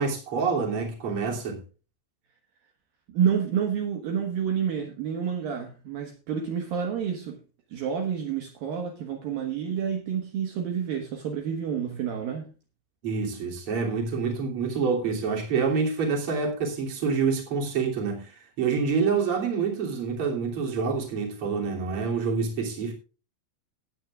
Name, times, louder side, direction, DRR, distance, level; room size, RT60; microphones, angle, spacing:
voice 1, 0.0-1.6 13.0-18.3 18.6-22.9, right 5 dB, 35° right, 2.8 m, -27 dB
voice 2, 3.1-7.4 7.7-12.5, right 8 dB, 70° right, 2.3 m, -29 dB
18.5 x 9.0 x 2.4 m
omnidirectional pair, 6.0 m